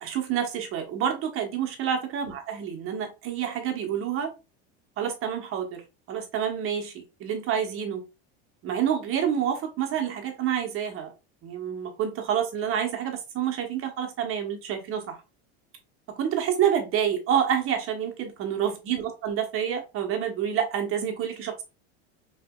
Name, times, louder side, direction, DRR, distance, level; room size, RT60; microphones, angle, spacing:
voice 1, 0.0-4.3 5.0-5.8 6.1-8.0 8.6-11.1 11.4-15.2 16.2-21.6, right 9 dB, 40° right, 3 dB, 1.0 m, -28 dB
3.2 x 2.8 x 2.3 m, 0.29 s
supercardioid pair, 120°, 32 cm